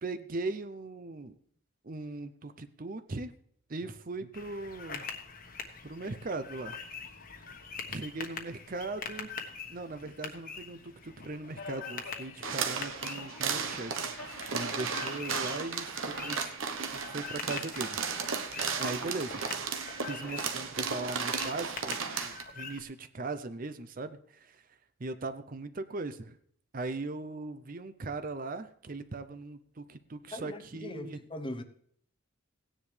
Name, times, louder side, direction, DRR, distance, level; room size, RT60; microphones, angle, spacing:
voice 1, 0.0-1.3 1.8-3.3 3.7-5.1 5.8-6.8 7.9-9.3 9.7-16.5 16.9-18.0 18.8-19.4 20.1-24.6 25.0-26.4 26.7-31.2, right 3 dB, 40° right, 0.6 m, -39 dB
sound 1, 4.3-22.8, left 5 dB, 40° left, 1.2 m, -44 dB
Subway metro underground, 6.8-18.8, left 4 dB, 80° left, 1.9 m, -52 dB
sound 2, 12.4-22.4, right 5 dB, 70° right, 1.1 m, -35 dB
voice 2, 30.3-31.6, left 1 dB, 25° left, 0.8 m, -40 dB
16.5 x 10.0 x 3.3 m
head